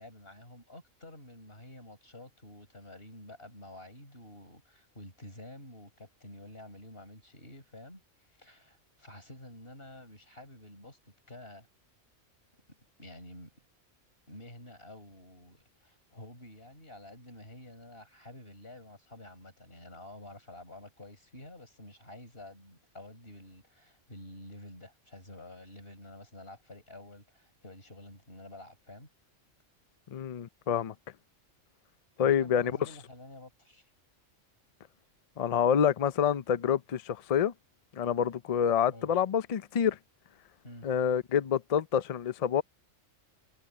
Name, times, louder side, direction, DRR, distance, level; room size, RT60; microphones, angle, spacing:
voice 1, 0.0-8.0 8.3-11.0 11.3-11.7 13.0-13.5 14.3-29.1 32.2-33.9 38.9-39.2 40.6-40.9, left 1 dB, 45° left, 7.6 m, -49 dB
voice 2, 30.1-30.9 32.2-32.7 35.4-37.5 38.0-40.0 40.8-42.6, left 8 dB, 65° left, 0.3 m, -27 dB
omnidirectional pair, 1.3 m